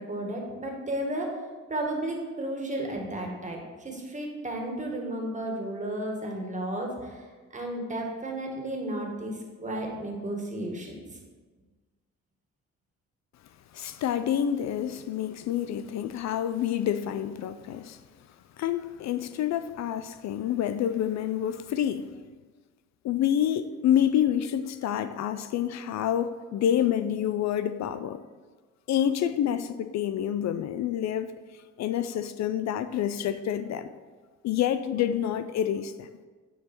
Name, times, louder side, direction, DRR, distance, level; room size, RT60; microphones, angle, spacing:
voice 1, 0.0-1.4 1.7-11.2, right 1 dB, 25° right, 0 dB, 1.9 m, -33 dB
voice 2, 13.7-18.0 18.6-22.2 23.0-28.2 28.9-31.4 31.8-33.9 34.4-36.1, left 10 dB, 65° left, 12 dB, 0.5 m, -28 dB
9.9 x 4.7 x 4.4 m, 1.4 s
cardioid pair, 90°, 30 cm